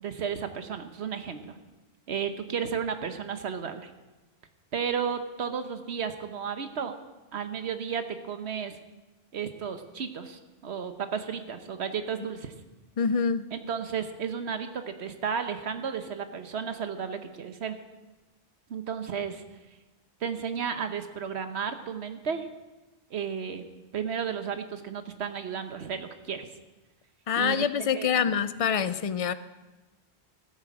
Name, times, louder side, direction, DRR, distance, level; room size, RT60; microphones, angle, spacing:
voice 1, 0.0-1.6 2.1-3.9 4.7-7.0 7.3-8.8 9.3-12.5 13.5-17.8 18.7-19.4 20.2-22.5 23.1-26.5 27.4-27.7 27.9-28.3, right 7 dB, 80° right, 8 dB, 1.2 m, -33 dB
voice 2, 13.0-13.5 27.3-29.3, left 7 dB, 45° left, 13 dB, 0.4 m, -26 dB
15.0 x 8.6 x 6.1 m, 1.1 s
omnidirectional pair, 1.1 m